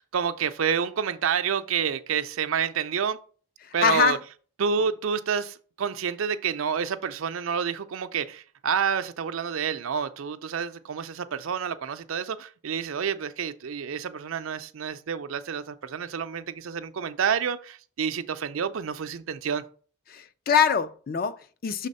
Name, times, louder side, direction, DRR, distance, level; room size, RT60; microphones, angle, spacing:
voice 1, 0.0-3.2 3.7-4.2 4.6-19.6, right 7 dB, 80° right, 0.5 m, -29 dB
voice 2, 3.6-4.2 20.1-21.9, left 7 dB, 45° left, 0.4 m, -24 dB
6.4 x 3.4 x 5.3 m
head